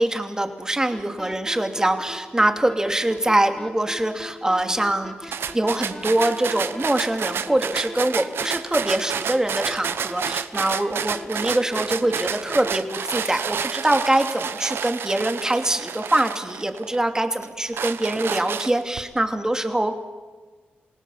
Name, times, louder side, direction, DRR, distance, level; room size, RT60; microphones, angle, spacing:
voice 1, 0.0-19.9, right 1 dB, 15° right, 6 dB, 2.8 m, -23 dB
sound 1, 0.9-13.3, left 1 dB, 15° left, 2.8 m, -38 dB
sound 2, 5.3-17.0 17.4-19.0, right 7 dB, 75° right, 1.1 m, -30 dB
28.0 x 18.0 x 7.4 m, 1.3 s
cardioid pair, 65°, 4 cm